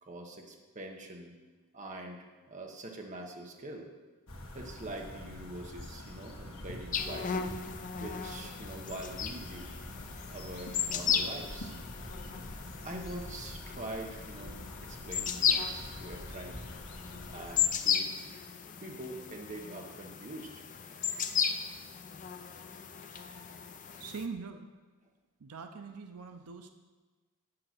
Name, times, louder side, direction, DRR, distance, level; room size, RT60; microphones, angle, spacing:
voice 1, 0.0-1.3 1.7-3.9 4.5-7.5 8.0-9.7 10.3-11.7 12.8-16.6 17.3-18.1 18.8-20.6 23.1-24.1, right 1 dB, 35° right, 1 dB, 1.2 m, -44 dB
sound 1, 4.3-17.7, left 1 dB, 65° left, 1.5 m, -46 dB
sound 2, 6.9-24.3, left 7 dB, 35° left, 0.5 m, -35 dB
voice 2, 24.0-24.6 25.4-26.7, right 5 dB, 85° right, 7 dB, 0.6 m, -42 dB
7.8 x 7.8 x 6.0 m, 1.3 s
head